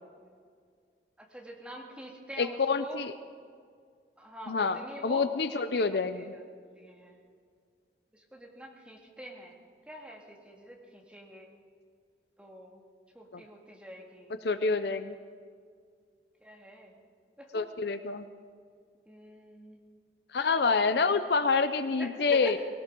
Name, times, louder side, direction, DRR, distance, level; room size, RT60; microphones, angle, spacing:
voice 1, 1.3-3.0 4.2-5.3 5.7-6.3 6.8-7.1 8.3-9.6 9.9-11.5 12.4-12.8 13.2-14.3 16.4-16.9 17.4-17.7 19.1-19.8 22.0-22.5, equal, 5° right, -1 dB, 2.0 m, -45 dB
voice 2, 2.4-3.2 4.5-6.3 13.3-13.4 14.4-15.2 17.5-18.2 20.3-22.6, left 4 dB, 65° left, 11 dB, 0.6 m, -27 dB
19.5 x 18.5 x 3.8 m, 2.1 s
head